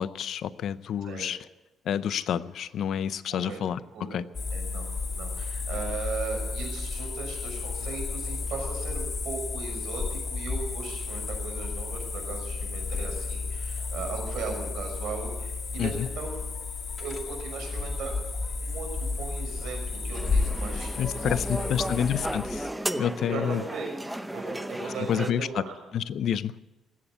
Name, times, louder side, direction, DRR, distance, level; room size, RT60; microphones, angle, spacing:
voice 1, 0.0-1.4 1.9-4.2 15.8-16.1 21.0-22.7 23.0-23.6 24.9-25.6 25.9-26.5, left 9 dB, 70° left, 16 dB, 0.6 m, -29 dB
voice 2, 3.3-3.6 3.9-4.2 4.5-16.4 17.0-18.2 18.6-21.9 23.2-25.7, right 5 dB, 80° right, 2 dB, 6.1 m, -38 dB
sound 1, 4.3-22.7, left 4 dB, 40° left, 2.2 m, -32 dB
sound 2, 20.1-25.3, right 1 dB, 5° right, 0.7 m, -34 dB
20.0 x 8.6 x 8.1 m, 1.0 s
cardioid pair, 90°, 0 cm